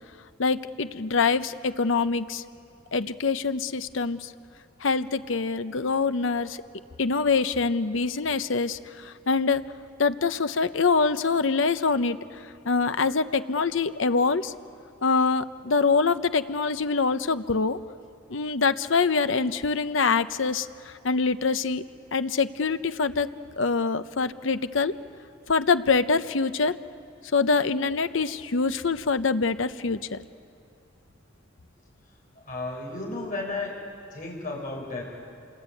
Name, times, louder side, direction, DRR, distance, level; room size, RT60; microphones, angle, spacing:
voice 1, 0.4-2.4 2.9-4.3 4.8-6.6 7.0-9.6 10.0-12.2 12.6-14.5 15.0-17.8 18.3-21.8 22.1-23.3 23.6-24.9 25.5-26.7 27.3-30.2, left 4 dB, 70° left, 12 dB, 0.8 m, -24 dB
voice 2, 32.3-33.7 34.1-35.0, left 2 dB, 40° left, -1 dB, 6.6 m, -33 dB
29.0 x 20.5 x 9.1 m, 2.5 s
head